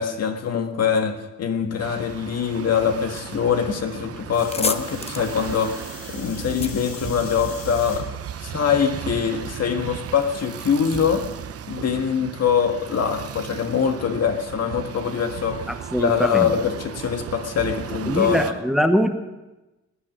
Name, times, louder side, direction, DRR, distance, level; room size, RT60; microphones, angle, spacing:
voice 1, 0.0-8.1 8.4-11.3 11.7-15.7 16.0-18.4, left 7 dB, 55° left, 6 dB, 1.7 m, -23 dB
sound 1, 1.8-18.5, right 9 dB, 50° right, 0.8 m, -36 dB
sound 2, 3.8-3.9 4.2-7.8, left 4 dB, 20° left, 0.8 m, -32 dB
sound 3, 4.3-8.0 8.7-9.1 10.4-10.5, left 5 dB, 85° left, 2.8 m, -41 dB
voice 2, 15.7-16.5 18.1-19.1, equal, ahead, 8 dB, 1.1 m, -22 dB
18.5 x 9.3 x 6.2 m, 1.0 s
cardioid pair, 90°, 30 cm